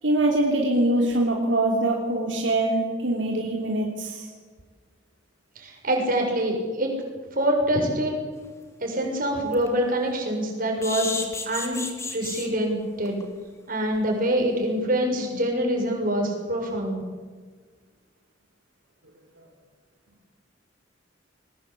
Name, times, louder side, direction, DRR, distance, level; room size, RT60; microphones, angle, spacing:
voice 1, 0.0-4.3, right 1 dB, 75° right, 0 dB, 3.4 m, -23 dB
voice 2, 5.5-6.9 7.3-8.2 8.8-13.2 13.7-17.0, equal, 50° right, 1 dB, 6.7 m, -25 dB
sound 1, 8.5-8.6 9.0-9.1 9.5-9.7 10.8-12.5 13.0-13.2 13.5-13.6 13.9-14.0, left 3 dB, 15° left, 2.9 m, -32 dB
22.0 x 20.0 x 8.7 m, 1.5 s
head